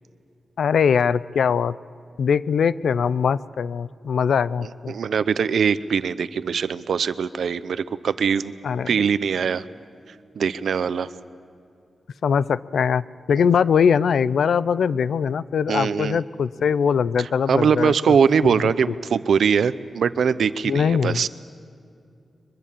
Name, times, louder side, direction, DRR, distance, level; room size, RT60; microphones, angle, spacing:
voice 1, 0.6-1.7 2.2-4.9 8.6-8.9 12.2-13.0 13.3-18.2 20.6-21.2, left 7 dB, 85° left, 18 dB, 0.5 m, -21 dB
voice 2, 4.6-8.5 8.9-9.6 10.4-11.1 15.7-16.2 17.2-21.3, right 6 dB, 80° right, 15 dB, 0.7 m, -22 dB
23.0 x 22.0 x 7.4 m, 2.5 s
wide cardioid pair, 115°, 0 cm